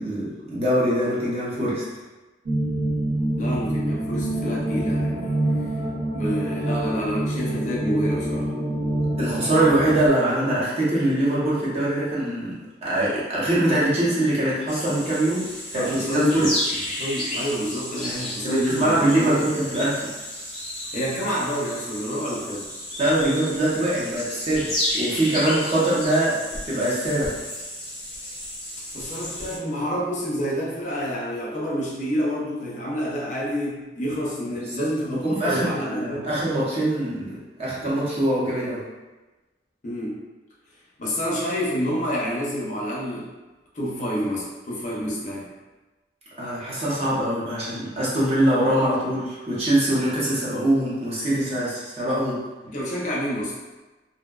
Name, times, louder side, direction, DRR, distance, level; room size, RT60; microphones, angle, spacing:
voice 1, 0.0-1.8 9.2-12.5 12.8-16.5 18.4-20.0 23.0-27.4 34.7-38.8 46.4-52.4, right 1 dB, 35° right, -8 dB, 0.7 m, -23 dB
sound 1, 2.5-10.1, right 1 dB, 85° right, 0.8 m, -26 dB
voice 2, 3.4-5.4 6.1-8.6 15.7-19.3 20.9-22.9 28.9-36.3 39.8-40.2 41.0-43.3 43.7-45.5 52.6-53.6, equal, 45° left, -5 dB, 0.5 m, -28 dB
sound 2, 14.7-29.6, left 1 dB, ahead, 0.8 m, -32 dB
2.5 x 2.1 x 2.3 m, 1.2 s
head